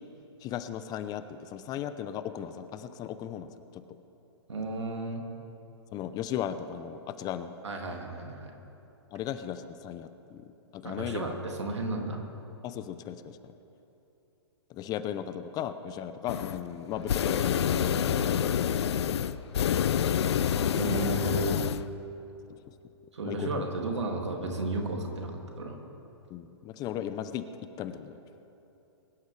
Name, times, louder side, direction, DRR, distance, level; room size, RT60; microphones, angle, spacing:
voice 1, 0.4-3.8 5.9-7.5 9.1-11.3 12.6-13.5 14.7-18.2 23.3-23.7 26.3-27.5 27.8-28.2, left 10 dB, 25° left, 11 dB, 0.6 m, -36 dB
voice 2, 4.5-5.2 7.6-8.5 10.8-12.2 20.7-21.6 23.1-25.8, right 2 dB, 85° right, 2 dB, 2.3 m, -33 dB
sound 1, 16.3-16.6 16.9-21.8, left 9 dB, 70° left, 0.5 m, -27 dB
22.5 x 12.0 x 3.3 m, 3.0 s
hypercardioid pair, 125°, 14 cm